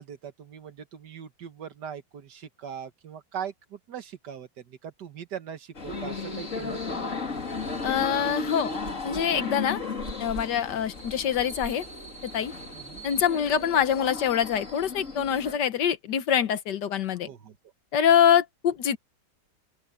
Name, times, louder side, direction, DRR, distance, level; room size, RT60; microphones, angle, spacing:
voice 1, 0.0-7.1 12.7-13.1 17.3-17.6, right 8 dB, 65° right, 1.8 m, -40 dB
sound 1, 5.7-15.6, left 3 dB, 45° left, 2.9 m, -35 dB
sound 2, 6.7-6.8 7.3-12.3, right 3 dB, 40° right, 2.4 m, -46 dB
voice 2, 7.8-8.7 9.0-9.8 10.2-11.8 12.2-12.5 13.0-17.3 17.9-19.0, left 9 dB, 70° left, 1.6 m, -24 dB
open air
omnidirectional pair, 2.0 m